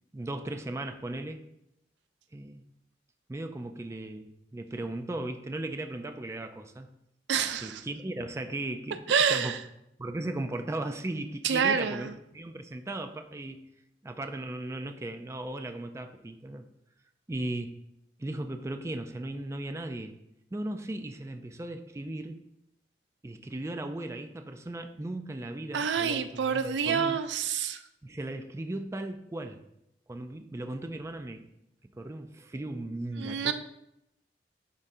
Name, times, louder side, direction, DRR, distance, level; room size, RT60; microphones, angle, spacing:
voice 1, 0.1-1.4 2.3-2.6 3.3-6.9 7.6-9.0 9.3-9.6 10.0-13.7 14.0-16.7 17.3-17.8 18.2-20.2 20.5-22.4 23.2-27.2 28.0-29.6 30.1-31.4 32.0-33.5, right 1 dB, 15° right, 7 dB, 0.3 m, -37 dB
voice 2, 7.3-7.8 9.1-9.6 11.4-12.1 25.7-27.8 33.2-33.5, right 6 dB, 85° right, 10 dB, 0.4 m, -27 dB
10.5 x 3.7 x 2.6 m, 0.82 s
head